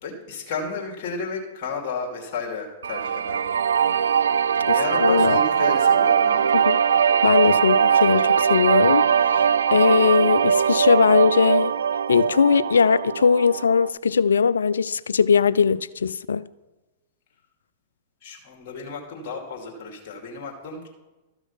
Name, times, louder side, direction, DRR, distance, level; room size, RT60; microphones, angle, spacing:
voice 1, 0.0-3.5 4.7-6.4 18.2-20.9, left 4 dB, 45° left, 2.6 m, -32 dB
sound 1, 2.8-13.9, right 7 dB, 80° right, 0.3 m, -21 dB
voice 2, 5.0-5.4 6.5-6.8 7.2-11.8 12.1-16.5, left 6 dB, 80° left, 0.3 m, -20 dB
13.0 x 6.1 x 5.7 m
hypercardioid pair, 105°, 0 cm